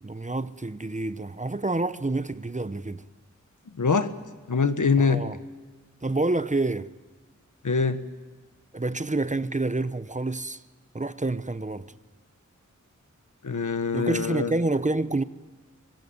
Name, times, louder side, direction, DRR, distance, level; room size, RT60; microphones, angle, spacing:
voice 1, 0.0-3.0 5.0-5.4 6.0-6.9 8.7-10.6 10.9-11.9 13.9-15.2, right 2 dB, 25° right, 0.8 m, -28 dB
voice 2, 3.8-4.1 4.5-5.2 7.6-8.0 13.4-14.5, left 5 dB, 80° left, 1.5 m, -23 dB
24.0 x 21.0 x 9.5 m
wide cardioid pair, 65°, 30 cm